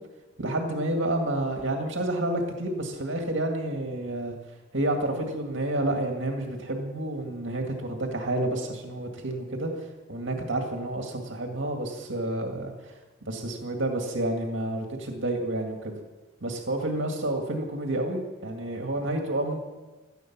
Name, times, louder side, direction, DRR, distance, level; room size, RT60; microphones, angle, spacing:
voice 1, 0.4-4.4 4.7-13.0 13.3-16.0 16.4-19.6, right 1 dB, 70° right, 2 dB, 2.1 m, -29 dB
17.5 x 13.5 x 6.1 m, 1.2 s
head